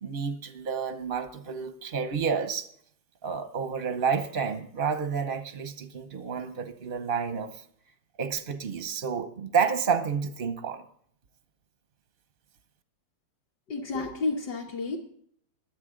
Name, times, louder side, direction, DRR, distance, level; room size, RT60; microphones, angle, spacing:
voice 1, 0.0-2.7 3.2-7.5 8.2-10.8, right 6 dB, 50° right, 0.6 m, -30 dB
voice 2, 13.7-15.0, left 3 dB, 60° left, 1.9 m, -31 dB
22.5 x 8.2 x 3.8 m
omnidirectional pair, 2.1 m